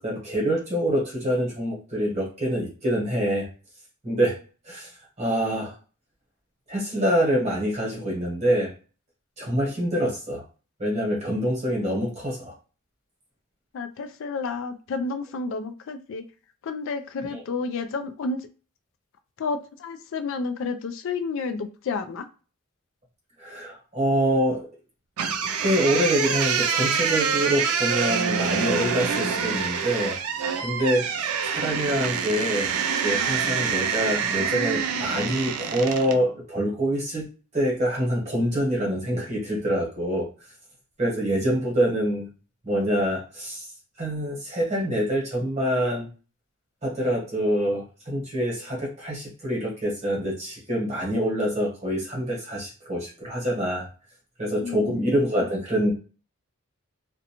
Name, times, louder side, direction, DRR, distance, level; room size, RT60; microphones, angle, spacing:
voice 1, 0.0-3.5 4.0-4.4 4.6-4.9 5.2-5.7 6.7-8.7 9.4-10.4 10.8-12.5 17.3-17.4 23.4-24.7 25.6-30.2 30.6-31.1 31.4-32.7 33.0-37.3 37.5-40.3 41.0-42.3 42.6-43.7 44.0-46.1 46.8-53.9 54.4-55.9, equal, 30° right, -2 dB, 1.0 m, -25 dB
voice 2, 13.7-16.2 16.6-18.5 19.4-22.3 54.6-54.9, left 4 dB, 60° left, 8 dB, 0.3 m, -30 dB
sound 1, 25.2-36.2, right 6 dB, 80° right, 0.4 m, -26 dB
2.5 x 2.1 x 2.8 m, 0.36 s
head